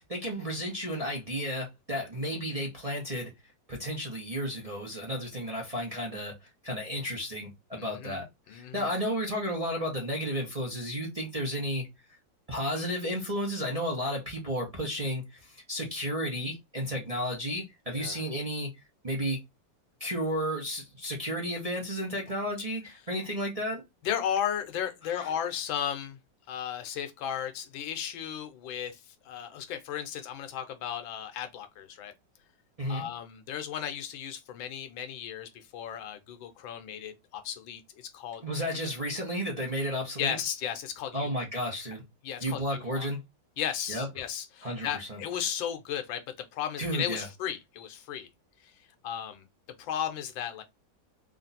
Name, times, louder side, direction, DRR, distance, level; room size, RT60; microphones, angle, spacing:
voice 1, 0.0-3.3 3.7-6.3 6.6-11.9 12.5-18.7 19.0-19.4 20.0-23.8 25.1-25.3 32.8-33.0 38.4-40.3 41.1-42.0 42.4-43.2 43.9-44.1 44.6-45.2 46.8-47.3, equal, 25° right, 0.8 m, -33 dB
voice 2, 7.8-8.9 17.9-18.3 24.0-26.2 26.5-32.1 32.9-38.4 40.2-41.3 42.2-43.1 43.6-48.3 48.6-48.7 49.0-49.5 49.8-50.6, left 9 dB, 85° left, 1.5 m, -35 dB
3.6 x 2.5 x 4.1 m
omnidirectional pair, 2.1 m